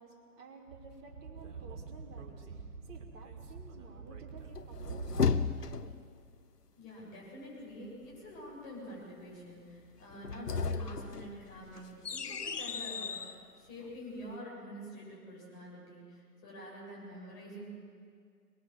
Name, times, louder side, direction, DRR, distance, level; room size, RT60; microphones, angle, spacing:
voice 1, 0.0-6.0, right 4 dB, 20° right, 0 dB, 3.0 m, -54 dB
Speech / Wind, 0.7-5.6, right 4 dB, 55° right, 3.4 m, -46 dB
sound 1, 4.6-6.1 10.1-13.4, left 5 dB, 80° left, 1.0 m, -34 dB
voice 2, 6.7-17.6, equal, 30° left, -4 dB, 7.8 m, -47 dB
24.0 x 21.0 x 7.4 m, 2.2 s
figure-of-eight pair, 125°, 46 cm